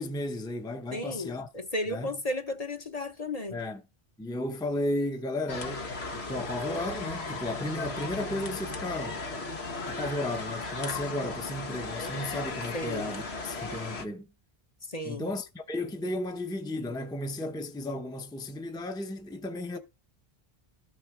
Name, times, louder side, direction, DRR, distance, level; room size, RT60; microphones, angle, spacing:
voice 1, 0.0-1.5 1.9-2.2 3.5-3.8 4.2-9.2 9.9-14.3 15.0-19.8, left 1 dB, 5° left, 0.7 m, -34 dB
voice 2, 0.9-3.6 12.7-13.1 14.9-15.3, left 1 dB, 40° left, 1.1 m, -34 dB
sound 1, 5.5-14.1, left 3 dB, 85° left, 1.6 m, -36 dB
13.0 x 6.4 x 4.8 m
omnidirectional pair, 1.1 m